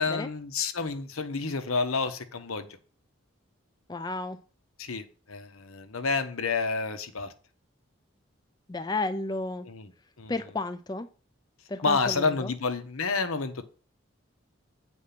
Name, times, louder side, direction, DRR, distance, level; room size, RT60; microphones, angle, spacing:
voice 1, 0.0-2.7 4.8-7.3 9.6-9.9 10.2-10.3 11.8-13.7, left 4 dB, 85° left, 1.1 m, -29 dB
voice 2, 3.9-4.4 8.7-9.7 10.3-11.1 11.7-12.5, left 2 dB, 20° left, 0.4 m, -32 dB
8.5 x 4.5 x 5.9 m
head